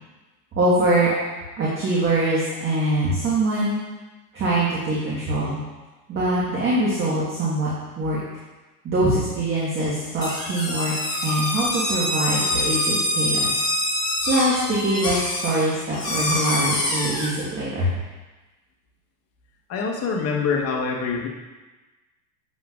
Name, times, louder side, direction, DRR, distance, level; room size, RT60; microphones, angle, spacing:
voice 1, 0.5-1.1 1.6-3.8 4.3-5.6 6.1-7.7 8.0-8.2 8.8-10.9 11.2-13.6 14.3-17.9, right 1 dB, 25° right, -7 dB, 1.5 m, -23 dB
sound 1, 10.2-17.3, left 1 dB, 10° left, 1.5 m, -25 dB
voice 2, 19.7-21.3, left 5 dB, 30° left, 0 dB, 1.1 m, -25 dB
7.7 x 6.4 x 2.4 m, 1.2 s
hypercardioid pair, 115°, 49 cm